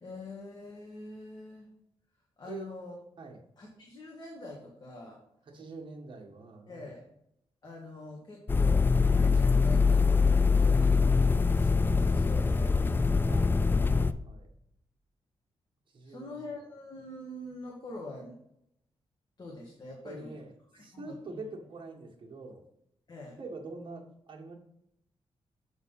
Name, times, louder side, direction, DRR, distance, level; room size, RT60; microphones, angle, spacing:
voice 1, 0.0-1.7 2.4-2.9 3.6-5.2 6.7-7.1 7.6-13.7 16.0-18.4 19.4-20.4 20.7-21.4 23.1-23.4, left 2 dB, 40° left, -1 dB, 1.5 m, -45 dB
voice 2, 5.5-6.8 13.3-14.5 15.9-16.4 20.0-22.6 23.4-24.5, right 3 dB, 50° right, 0 dB, 1.6 m, -45 dB
sound 1, 8.5-14.1, left 4 dB, 20° left, 0.3 m, -23 dB
7.1 x 4.0 x 5.4 m, 0.74 s
cardioid pair, 95°, 10 cm